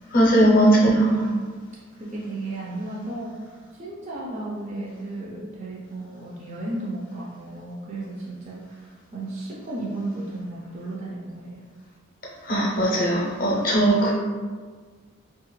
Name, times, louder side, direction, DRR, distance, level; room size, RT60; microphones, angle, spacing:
voice 1, 0.1-1.3 12.4-14.1, right 1 dB, 40° left, -4 dB, 0.6 m, -19 dB
voice 2, 0.7-1.5 2.0-11.6, right 2 dB, 35° right, -5 dB, 0.4 m, -34 dB
2.8 x 2.4 x 3.1 m, 1.5 s
head